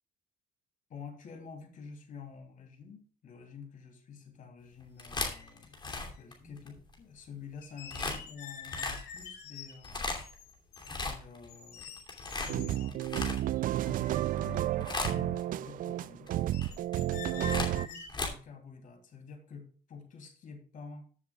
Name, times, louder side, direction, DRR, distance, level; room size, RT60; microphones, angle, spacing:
voice 1, 0.9-10.2 10.9-12.0 12.4-13.5 13.8-16.3 17.1-21.1, left 5 dB, 50° left, 5 dB, 3.0 m, -48 dB
sound 1, 4.8-7.0 7.9-8.2 8.6-9.2 9.7-10.4 10.8-11.5 11.8-13.8 14.3-14.6 14.8-15.4 16.3-18.3, left 3 dB, 25° left, 2.8 m, -36 dB
sound 2, 5.0-5.1 5.3-6.2 7.6-10.9 11.5-12.9 13.5-13.6 13.8-14.9 16.5-18.1, left 6 dB, 80° left, 2.5 m, -46 dB
sound 3, 12.4-17.9, right 14 dB, 55° right, 0.4 m, -32 dB
14.5 x 7.2 x 2.3 m, 0.41 s
cardioid pair, 110°, 17 cm